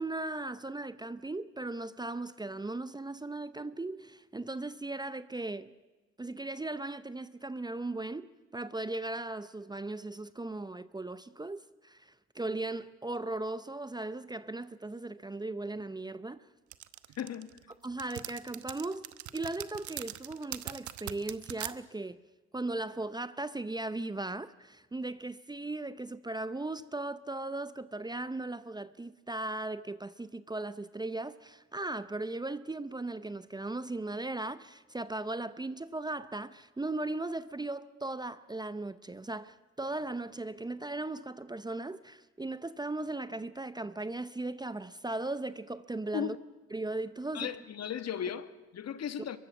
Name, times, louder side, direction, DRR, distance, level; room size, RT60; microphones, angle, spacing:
voice 1, 0.0-5.7 6.2-8.3 8.5-16.5 17.8-22.2 22.5-46.4 46.7-47.5, right 2 dB, 15° right, 0.6 m, -37 dB
sound 1, 16.7-21.7, right 12 dB, 70° right, 1.0 m, -41 dB
voice 2, 17.2-17.5 46.1-46.4 47.3-49.4, left 9 dB, 55° left, 1.3 m, -36 dB
23.0 x 22.5 x 7.2 m
cardioid pair, 90°, 30 cm